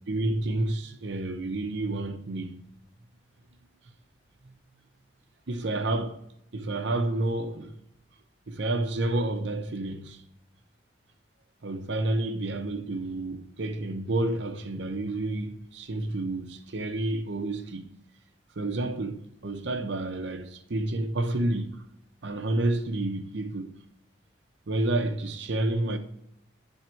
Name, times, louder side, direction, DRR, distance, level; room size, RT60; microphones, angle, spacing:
voice 1, 0.1-2.6 4.4-4.6 5.5-6.2 6.5-7.8 8.5-10.2 11.6-17.9 18.6-21.8 22.2-23.7 24.7-26.0, right 2 dB, 70° right, 0.7 m, -30 dB
10.0 x 3.6 x 4.4 m
head